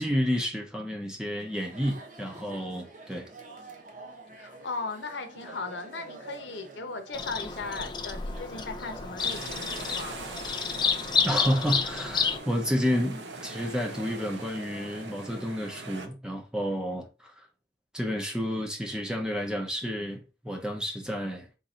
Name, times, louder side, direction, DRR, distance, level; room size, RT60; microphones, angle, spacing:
voice 1, 0.0-3.3 11.2-17.3 17.9-21.5, equal, 5° right, 0.7 m, -30 dB
Chatter, 1.4-15.5, right 2 dB, 45° right, 0.8 m, -48 dB
voice 2, 4.3-10.2, left 3 dB, 85° left, 0.8 m, -37 dB
Bird vocalization bird call bird song, 7.1-12.4, left 6 dB, 25° left, 0.4 m, -30 dB
sound 1, 9.2-16.1, right 3 dB, 85° right, 0.7 m, -42 dB
3.8 x 2.6 x 4.2 m
head